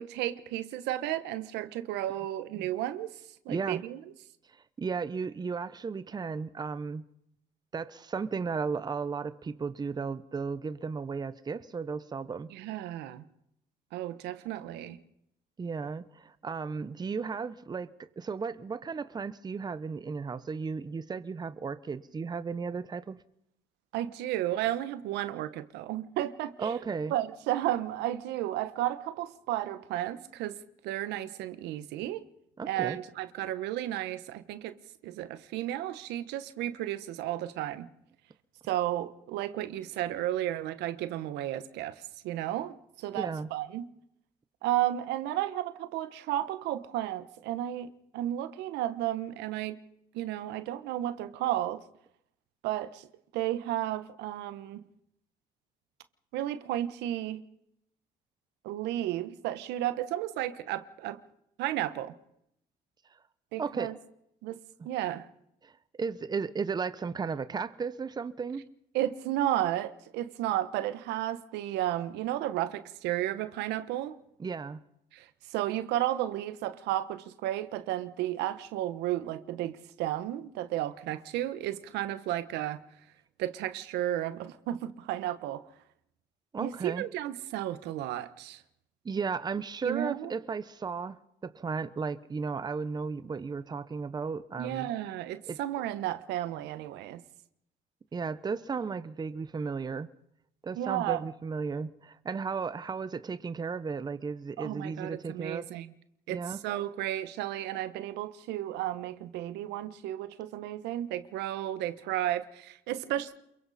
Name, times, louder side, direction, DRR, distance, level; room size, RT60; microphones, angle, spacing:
voice 1, 0.0-3.2 3.4-4.0 12.5-13.2 13.9-15.0 23.9-26.8 27.1-30.6 30.8-32.2 32.7-34.8 35.0-37.9 38.7-41.9 42.2-43.9 44.6-49.8 50.1-51.8 52.6-53.1 53.3-54.9 56.3-57.4 58.6-61.2 61.6-62.1 63.5-63.9 64.4-64.6 64.8-65.3 68.9-74.2 75.1-75.3 75.5-82.8 83.4-85.6 86.6-88.6 89.8-90.3 94.6-97.2 100.7-101.2 104.6-105.9 106.3-113.3, right 13 dB, 90° right, 1.2 m, -33 dB
voice 2, 3.5-3.8 4.5-7.0 7.7-12.5 15.6-23.2 26.6-27.1 32.6-33.0 43.1-43.5 63.6-63.9 65.6-65.7 66.0-68.6 74.4-74.8 86.5-87.1 89.0-94.9 95.5-95.6 98.1-100.1 100.6-105.7 106.3-106.6, right 5 dB, 25° right, 0.9 m, -35 dB
28.0 x 23.0 x 4.2 m
cardioid pair, 110°, 17 cm